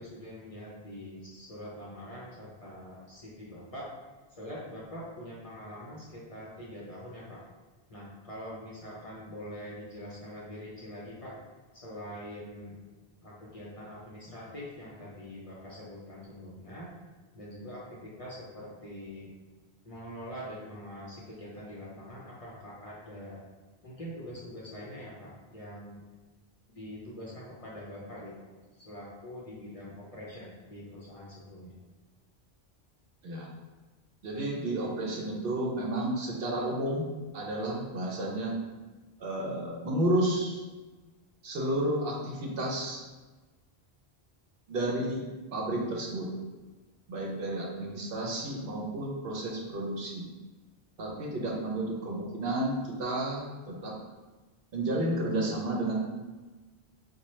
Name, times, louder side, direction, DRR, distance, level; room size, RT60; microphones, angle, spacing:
voice 1, 0.0-3.9 4.3-7.4 7.9-11.3 11.7-12.8 13.2-16.9 17.3-19.3 19.8-23.4 23.8-26.0 26.7-28.5 28.8-31.8, equal, 40° left, -6 dB, 0.6 m, -44 dB
voice 2, 34.2-37.1 37.3-38.5 39.2-40.6 41.4-43.0 44.7-46.3 47.1-50.3 51.0-54.0 54.7-56.0, right 1 dB, 65° right, -2 dB, 0.8 m, -31 dB
4.1 x 2.2 x 3.1 m, 1.2 s
omnidirectional pair, 1.1 m